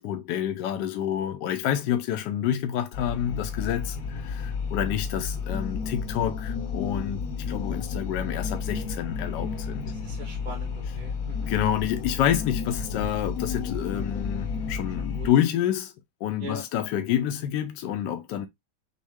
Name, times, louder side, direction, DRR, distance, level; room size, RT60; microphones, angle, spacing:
voice 1, 0.0-9.9 11.5-15.9 16.2-18.5, left 10 dB, 85° left, 1.2 m, -28 dB
sound 1, 2.9-15.3, left 5 dB, 65° left, 1.0 m, -32 dB
voice 2, 9.8-11.5 15.1-15.3 16.4-16.6, right 1 dB, 35° right, 1.1 m, -41 dB
6.2 x 2.3 x 3.5 m
omnidirectional pair, 1.8 m